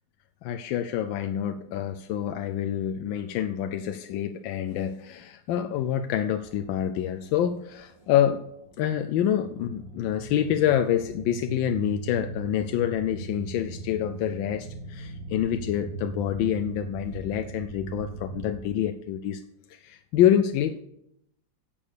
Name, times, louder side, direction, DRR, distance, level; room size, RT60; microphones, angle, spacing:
voice 1, 0.4-8.4 8.8-19.4 19.7-20.8, left 10 dB, 85° left, 8 dB, 1.3 m, -27 dB
sound 1, 6.4-18.6, right 4 dB, 80° right, 1.9 m, -39 dB
10.5 x 7.0 x 6.7 m, 0.79 s
omnidirectional pair, 2.0 m